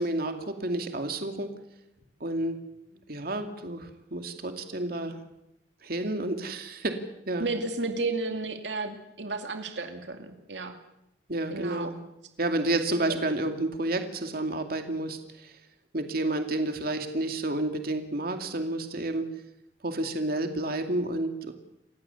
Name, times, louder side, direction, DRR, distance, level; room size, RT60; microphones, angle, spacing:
voice 1, 0.0-1.5 2.2-2.6 3.1-5.2 5.8-7.0 7.3-7.5 11.3-12.0 12.4-15.6 15.9-19.3 19.8-21.5, right 2 dB, 55° right, 6 dB, 2.5 m, -30 dB
voice 2, 7.4-10.8 11.5-11.9, right 3 dB, 85° right, 5 dB, 2.4 m, -32 dB
29.0 x 15.5 x 8.3 m, 0.85 s
head